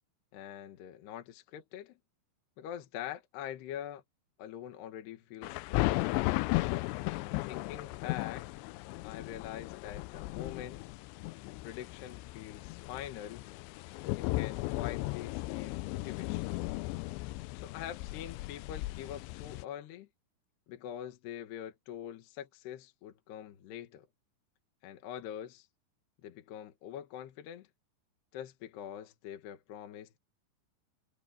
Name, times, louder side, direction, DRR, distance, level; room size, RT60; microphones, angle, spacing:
voice 1, 0.3-2.0 2.6-4.0 4.4-6.3 7.2-8.5 9.0-10.8 11.5-13.4 14.1-16.5 17.5-20.1 20.7-24.1 24.8-25.7 26.2-27.7 28.3-30.2, left 10 dB, 65° left, 3.2 m, -44 dB
sound 1, 5.4-19.6, left 21 dB, 90° left, 2.5 m, -36 dB
omnidirectional pair, 5.7 m